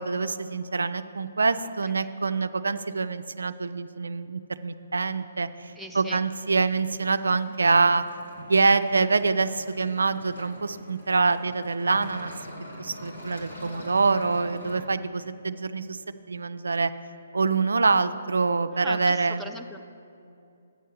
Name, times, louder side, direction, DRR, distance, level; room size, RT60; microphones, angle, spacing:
voice 1, 0.0-8.0 8.5-12.3 12.8-16.0 16.3-16.9 17.3-19.4, right 4 dB, 80° right, 11 dB, 0.3 m, -25 dB
sound 1, 5.6-14.8, left 1 dB, 80° left, 2.1 m, -44 dB
voice 2, 5.8-6.2 18.7-19.8, right 1 dB, ahead, 1 dB, 0.5 m, -40 dB
8.7 x 5.4 x 6.7 m, 2.7 s
figure-of-eight pair, 140°, 0 cm